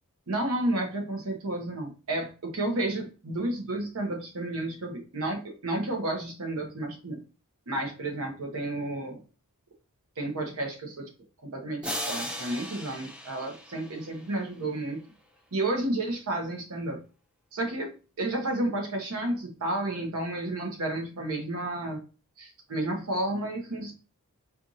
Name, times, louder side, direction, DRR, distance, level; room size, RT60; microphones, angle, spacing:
voice 1, 0.3-7.2 7.7-9.2 10.2-11.1 11.4-15.0 15.5-17.0 17.5-17.9 18.2-22.0 22.4-23.9, right 1 dB, 75° right, 2 dB, 0.9 m, -31 dB
sound 1, 11.8-14.5, equal, 5° right, 0.4 m, -37 dB
4.4 x 2.5 x 2.6 m, 0.34 s
head